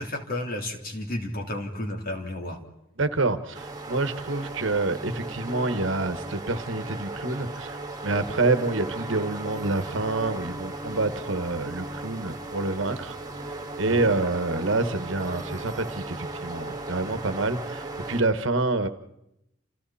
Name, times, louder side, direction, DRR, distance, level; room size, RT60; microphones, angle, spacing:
voice 1, 0.0-2.6 13.8-14.1, left 1 dB, 45° left, 3.5 m, -32 dB
voice 2, 3.0-7.8 8.0-13.2 13.8-18.9, right 2 dB, 65° right, 1.4 m, -27 dB
sound 1, 3.5-18.2, right 2 dB, 20° right, 2.1 m, -36 dB
29.0 x 29.0 x 4.3 m
head